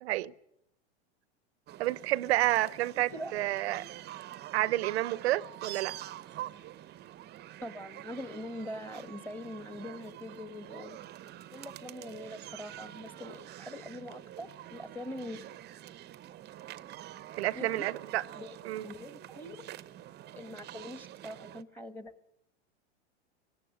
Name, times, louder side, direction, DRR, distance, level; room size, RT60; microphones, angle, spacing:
voice 1, 0.0-0.3 1.8-3.8 4.5-6.0 17.4-18.2 18.6-18.9, right 16 dB, 70° right, 0.8 m, -30 dB
sound 1, 1.7-21.6, right 13 dB, 30° right, 0.7 m, -46 dB
voice 2, 7.6-11.0 11.5-15.5 17.5-17.9 18.3-19.6 20.3-22.1, left 1 dB, 5° left, 1.2 m, -43 dB
20.0 x 17.0 x 9.3 m
hypercardioid pair, 105°, 33 cm